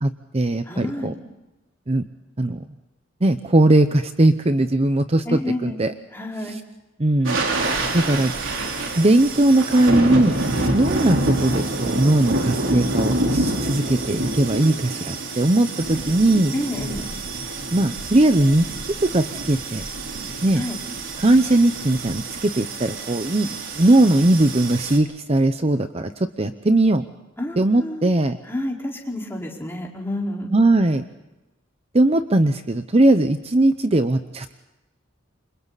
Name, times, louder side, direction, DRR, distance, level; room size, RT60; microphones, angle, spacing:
voice 1, 0.0-1.1 1.9-2.0 2.4-2.7 3.2-5.9 6.5-6.6 7.0-7.4 7.9-8.3 9.0-10.4 10.7-16.5 17.7-18.7 19.1-19.8 20.4-20.6 21.2-27.0 27.6-28.4 30.5-31.0 31.9-34.5, right 1 dB, 30° right, 9 dB, 0.8 m, -19 dB
voice 2, 0.7-1.2 5.2-5.8 6.1-6.6 16.5-17.1 20.5-20.8 27.4-28.1 28.5-30.5, left 1 dB, 10° left, -2 dB, 4.6 m, -29 dB
sound 1, 7.2-25.0, right 2 dB, 90° right, 3.9 m, -27 dB
29.0 x 26.0 x 4.1 m, 1.0 s
head